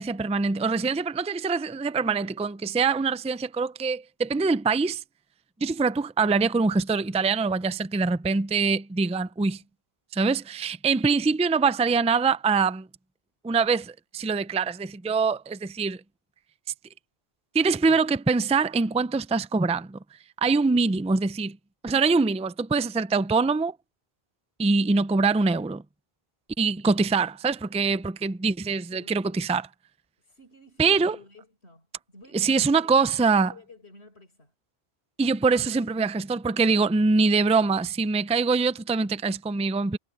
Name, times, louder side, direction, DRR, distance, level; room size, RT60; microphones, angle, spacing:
voice 1, 0.0-5.0 5.6-9.6 10.1-12.9 13.4-16.0 17.5-20.0 20.4-21.6 21.8-23.7 24.6-25.8 26.6-29.7 30.8-31.2 32.3-33.5 35.2-40.0, right 4 dB, 10° right, 0.4 m, -24 dB
voice 2, 20.7-21.0 27.0-27.1 28.6-29.5 30.2-34.5 35.6-36.0, left 2 dB, 85° left, 5.0 m, -53 dB
omnidirectional pair, 1.1 m